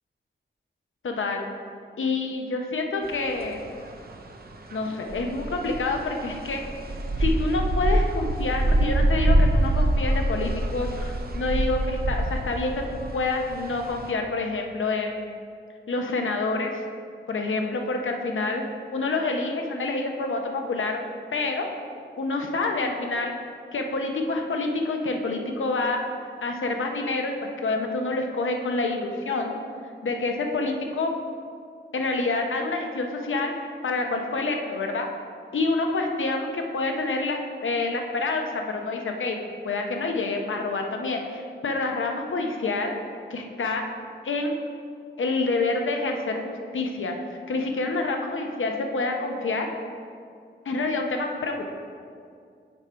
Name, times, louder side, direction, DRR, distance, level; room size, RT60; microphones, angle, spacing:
voice 1, 1.0-1.5 2.0-3.6 4.7-6.6 7.2-15.2 15.9-16.8 17.3-18.7 18.9-21.0 21.3-21.7 22.2-23.3 23.7-26.0 26.4-29.5 30.0-31.1 31.9-33.5 33.8-35.1 35.5-39.4 39.6-42.9 43.3-43.8 44.2-44.6 45.2-47.1 47.5-49.7 50.7-51.7, left 3 dB, 90° left, 3 dB, 0.7 m, -27 dB
sound 1, 3.0-14.1, right 1 dB, 50° right, 0.6 m, -26 dB
7.0 x 4.4 x 5.1 m, 2.3 s
wide cardioid pair, 110°, 20 cm